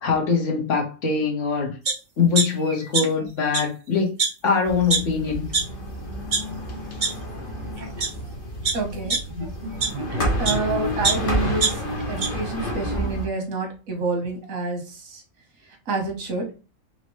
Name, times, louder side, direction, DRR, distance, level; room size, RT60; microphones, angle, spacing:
voice 1, 0.0-1.7 2.2-4.1 4.4-5.4, left 5 dB, 65° left, 1 dB, 1.4 m, -22 dB
sound 1, 1.8-1.9 2.3-3.2 3.5-3.6 4.2-4.3 4.9-5.0 5.5-5.6 6.1-6.4 7.0-7.1 7.8-8.1 8.6-10.6 11.0-12.3 12.7-12.8, right 4 dB, 40° right, 0.9 m, -24 dB
sound 2, 4.6-13.3, equal, 45° left, 1.0 m, -29 dB
voice 2, 8.7-9.2 10.4-11.8 12.1-15.2 15.9-16.5, right 3 dB, 85° right, 3 dB, 1.5 m, -28 dB
4.1 x 2.9 x 3.0 m, 0.33 s
omnidirectional pair, 1.4 m